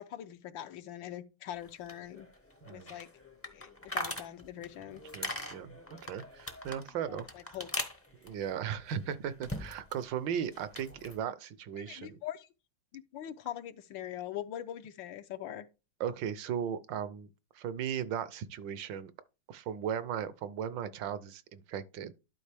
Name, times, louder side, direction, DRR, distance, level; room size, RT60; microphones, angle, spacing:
voice 1, 0.0-2.3 2.7-3.1 3.5-5.0 7.1-7.7 11.9-12.5 12.9-15.7, left 11 dB, 80° left, 1.4 m, -42 dB
sound 1, 1.5-10.0 10.3-11.2, left 1 dB, 15° left, 0.4 m, -42 dB
voice 2, 2.6-3.0 5.1-7.5 8.2-12.2 16.0-17.3 17.5-19.1 19.5-22.1, right 8 dB, 75° right, 1.4 m, -37 dB
11.5 x 4.9 x 3.4 m
omnidirectional pair, 2.1 m